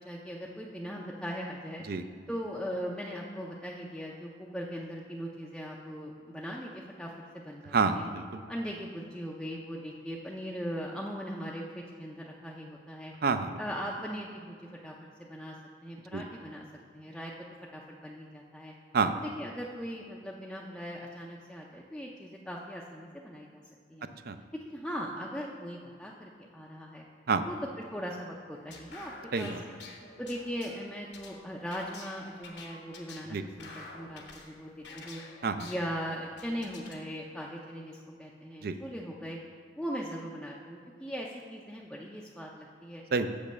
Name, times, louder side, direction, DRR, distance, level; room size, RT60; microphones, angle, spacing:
voice 1, 0.0-1.8 2.3-8.0 8.5-13.1 13.6-15.6 15.8-16.6 16.9-17.3 17.7-18.7 19.2-23.6 23.9-24.1 24.5-27.0 27.4-27.6 27.9-29.1 29.4-29.7 30.2-35.2 35.6-39.4 39.8-43.0, equal, 5° left, -3 dB, 0.5 m, -39 dB
voice 2, 7.7-8.4 13.2-13.6 16.1-16.2 18.9-19.2 24.3-24.4 27.3-27.4 29.3-29.6 33.3-33.4 35.4-35.7 38.6-38.8 43.1-43.3, right 4 dB, 55° right, 9 dB, 0.5 m, -28 dB
sound 1, 28.5-37.0, left 3 dB, 65° left, 1.0 m, -49 dB
7.1 x 5.2 x 6.6 m, 2.1 s
head